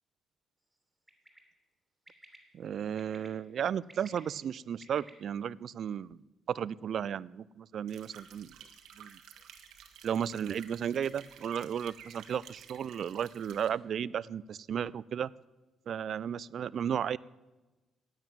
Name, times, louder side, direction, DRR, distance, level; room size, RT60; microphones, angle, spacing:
Bird, 1.1-1.4 2.1-2.4 3.0-3.3 3.7-5.1, right 1 dB, 10° right, 2.8 m, -54 dB
voice 1, 2.5-6.2 6.5-8.5 9.0-9.2 10.0-15.3 15.9-17.2, right 8 dB, 60° right, 21 dB, 0.4 m, -34 dB
sound 1, 7.9-13.7, right 8 dB, 85° right, 1.4 m, -53 dB
10.5 x 9.2 x 9.0 m, 1.1 s
cardioid pair, 90°, 0 cm